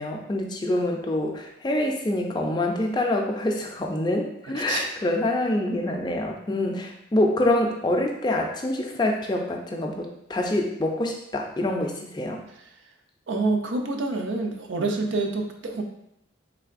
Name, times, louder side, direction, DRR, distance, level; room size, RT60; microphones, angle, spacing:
voice 1, 0.0-12.4, left 1 dB, 20° left, 1 dB, 0.4 m, -26 dB
voice 2, 13.3-15.8, right 3 dB, 70° right, 4 dB, 0.5 m, -27 dB
3.6 x 3.3 x 2.4 m, 0.79 s
head